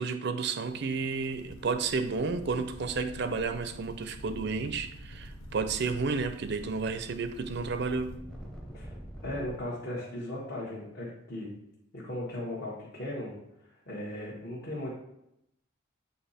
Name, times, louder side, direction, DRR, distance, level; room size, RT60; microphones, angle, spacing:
voice 1, 0.0-8.1, right 4 dB, 50° right, 0.4 m, -31 dB
sound 1, 0.6-8.2, left 1 dB, 80° left, 0.8 m, -54 dB
sound 2, 0.8-0.9 1.1-9.6, equal, 5° left, 0.7 m, -46 dB
voice 2, 9.2-11.5 11.9-13.4 13.9-14.9, left 1 dB, 50° left, 1.2 m, -37 dB
8.0 x 2.9 x 4.2 m
head